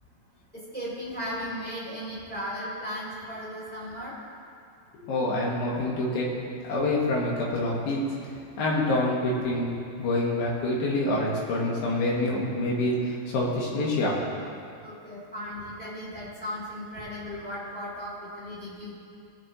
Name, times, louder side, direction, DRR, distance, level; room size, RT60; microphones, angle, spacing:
voice 1, 0.5-4.1 14.8-18.9, equal, 5° left, -9 dB, 1.8 m, -36 dB
voice 2, 4.9-6.3 6.6-8.0 8.6-9.7 10.0-14.2, left 1 dB, 70° left, -4 dB, 3.3 m, -26 dB
18.5 x 6.9 x 3.1 m, 2.4 s
omnidirectional pair, 4.5 m